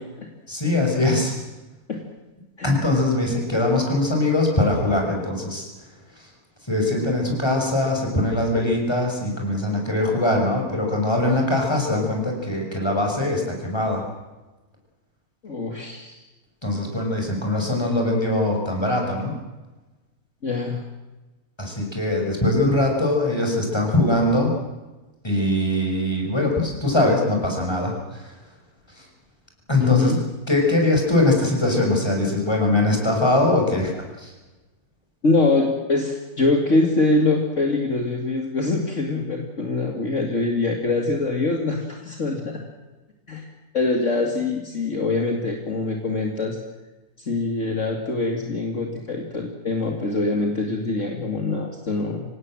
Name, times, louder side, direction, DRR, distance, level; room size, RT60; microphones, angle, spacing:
voice 1, 0.5-1.4 2.6-5.7 6.7-14.0 16.6-19.3 21.6-24.5 25.2-28.3 28.9-29.1 29.7-30.1 30.5-34.3, left 2 dB, 15° left, 1 dB, 6.3 m, -22 dB
voice 2, 15.4-16.2 20.4-20.8 29.8-30.2 35.2-42.5 43.3-43.5 43.7-46.6 47.2-52.2, left 3 dB, 50° left, 2 dB, 2.7 m, -24 dB
26.0 x 18.0 x 7.7 m, 1.1 s
omnidirectional pair, 1.6 m